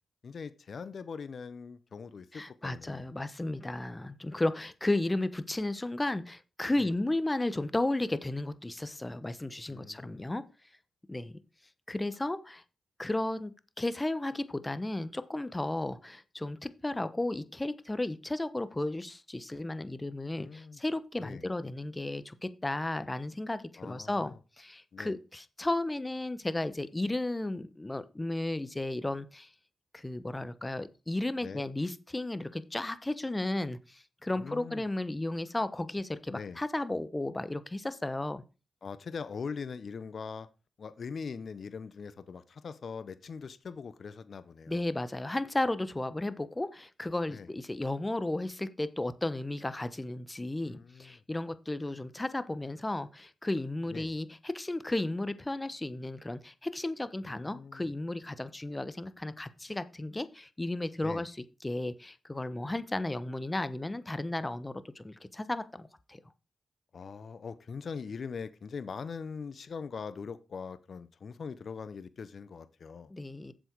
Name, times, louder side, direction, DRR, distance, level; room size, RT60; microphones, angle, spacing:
voice 1, 0.2-3.1 6.8-6.9 9.7-10.3 20.4-20.8 21.2-21.4 23.8-24.4 24.9-25.1 31.4-31.7 34.4-34.8 36.3-36.6 38.8-40.5 40.8-44.8 47.3-47.5 50.6-51.2 53.9-54.1 57.3-57.8 61.0-61.3 66.9-73.1, left 5 dB, 65° left, 0.7 m, -42 dB
voice 2, 2.3-10.5 11.1-11.4 11.9-12.6 13.0-13.5 13.8-29.5 29.9-38.4 44.7-66.2 73.1-73.5, left 2 dB, 20° left, 1.0 m, -34 dB
7.6 x 7.2 x 4.6 m
supercardioid pair, 40°, 0 cm